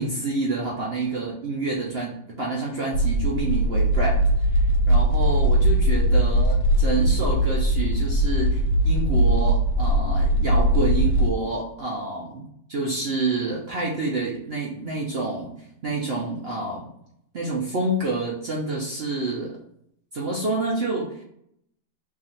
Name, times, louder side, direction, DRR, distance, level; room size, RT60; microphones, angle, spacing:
voice 1, 0.0-4.2 4.5-4.6 4.9-15.5 15.8-16.9 17.3-19.5 20.1-21.1, right 2 dB, 55° right, -4 dB, 0.7 m, -28 dB
sound 1, 2.9-11.3, right 1 dB, 85° left, 1.4 m, -20 dB
3.6 x 2.4 x 4.3 m, 0.72 s
omnidirectional pair, 2.0 m